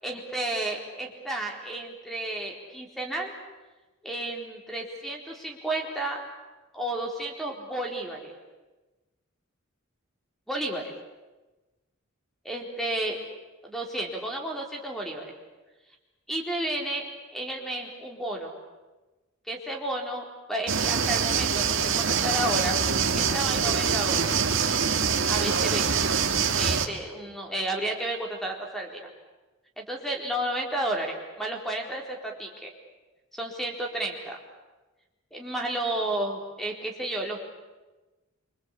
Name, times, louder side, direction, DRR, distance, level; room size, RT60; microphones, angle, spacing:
voice 1, 0.0-3.3 4.0-6.2 6.7-8.3 10.5-10.9 12.4-13.2 13.6-15.3 16.3-18.5 19.5-22.8 23.1-24.4 25.3-25.9 26.6-29.0 29.8-32.7 33.3-34.4 35.3-37.4, right 1 dB, ahead, 1 dB, 4.3 m, -32 dB
sound 1, 20.7-26.9, right 6 dB, 65° right, 2.1 m, -24 dB
27.5 x 25.5 x 8.5 m, 1.2 s
head